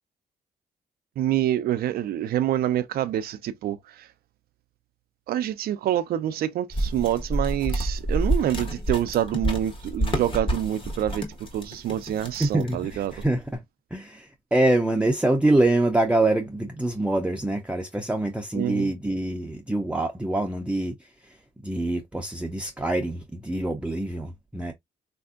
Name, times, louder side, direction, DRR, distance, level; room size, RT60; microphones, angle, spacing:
voice 1, 1.2-4.1 5.3-11.3 11.5-13.2 18.5-18.9, right 11 dB, 70° right, 0.4 m, -26 dB
sound 1, 6.7-13.5, right 1 dB, 30° left, 1.1 m, -29 dB
voice 2, 12.4-13.6 13.9-24.7, right 2 dB, 5° right, 0.5 m, -25 dB
3.4 x 2.5 x 2.3 m
cardioid pair, 85°, 16 cm